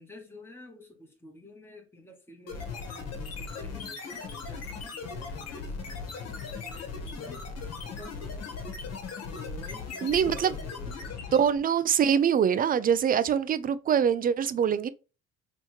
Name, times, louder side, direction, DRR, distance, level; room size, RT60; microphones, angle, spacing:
voice 1, 0.0-7.5 7.8-8.5 9.3-11.2, left 2 dB, 10° left, 1.0 m, -50 dB
sound 1, 2.5-11.6, left 4 dB, 60° left, 1.3 m, -38 dB
voice 2, 10.0-10.5 11.3-14.9, right 8 dB, 30° right, 0.3 m, -24 dB
3.1 x 3.0 x 3.1 m
supercardioid pair, 85°, 29 cm